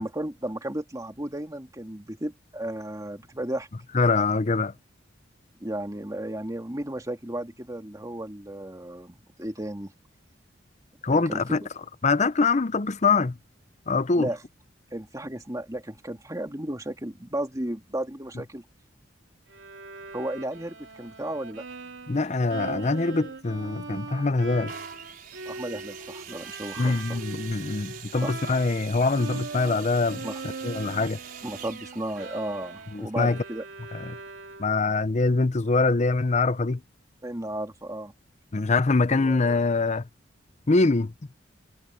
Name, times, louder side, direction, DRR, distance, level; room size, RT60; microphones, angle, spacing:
voice 1, 0.0-3.7 5.6-9.9 11.1-11.6 14.2-14.4 14.9-18.6 20.1-21.6 25.5-27.2 28.2-28.5 30.2-30.4 31.4-33.6 37.2-38.1 39.1-39.6, right 1 dB, 20° right, 2.6 m, -34 dB
voice 2, 3.9-4.7 11.0-11.6 12.0-13.4 13.9-14.3 22.1-24.7 26.8-30.3 30.6-31.2 32.9-33.4 34.0-34.2 34.6-36.8 38.5-40.0 40.7-41.1, left 3 dB, 35° left, 0.6 m, -24 dB
Bowed string instrument, 19.5-28.9 29.1-34.9, right 3 dB, 85° right, 2.6 m, -41 dB
sound 1, 24.7-34.4 35.1-35.2, right 7 dB, 50° right, 4.7 m, -45 dB
head